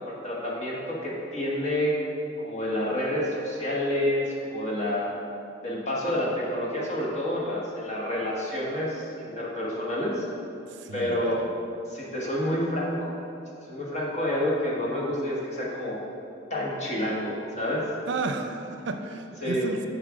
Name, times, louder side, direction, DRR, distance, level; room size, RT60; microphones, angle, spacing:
voice 1, 0.0-1.9 2.4-5.1 5.6-10.2 10.9-11.4 11.9-13.2 13.7-16.0 16.5-17.8 19.4-19.7, left 1 dB, 35° left, -4 dB, 1.4 m, -28 dB
voice 2, 10.7-11.5 18.1-19.9, right 3 dB, 70° right, 7 dB, 0.5 m, -33 dB
7.5 x 5.1 x 4.9 m, 2.6 s
head